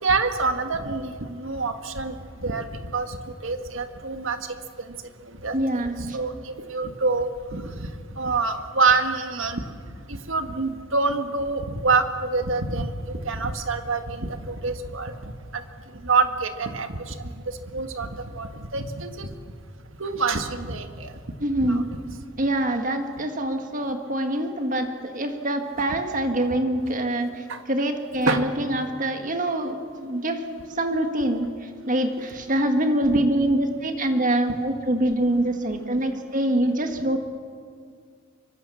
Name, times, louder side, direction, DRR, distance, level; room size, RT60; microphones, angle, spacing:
voice 1, 0.0-2.7 2.9-4.4 5.4-5.8 6.1-9.6 10.1-15.3 16.0-18.1 18.3-19.3 20.0-21.1 21.6-21.8 27.5-27.6 28.3-28.4 33.1-33.2, right 4 dB, 65° right, 7 dB, 1.8 m, -26 dB
voice 2, 5.5-6.2 21.4-21.9 22.4-30.4 30.8-31.5 31.9-37.2, right 1 dB, 40° right, 5 dB, 1.8 m, -25 dB
25.0 x 24.5 x 7.2 m, 2.2 s
head